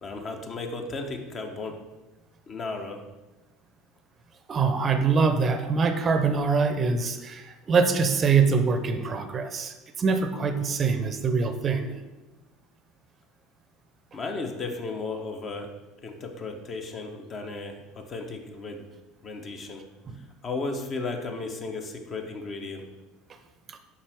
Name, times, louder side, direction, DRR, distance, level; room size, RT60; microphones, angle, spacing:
voice 1, 0.0-1.8 2.5-3.0 14.1-15.7 16.0-18.8 19.2-19.8 20.4-22.8, left 3 dB, 35° left, 4 dB, 0.9 m, -34 dB
voice 2, 4.5-11.9 20.1-20.2 23.7-23.8, right 5 dB, 30° right, 8 dB, 0.6 m, -24 dB
7.0 x 5.4 x 3.5 m, 1.1 s
figure-of-eight pair, 70°, 0 cm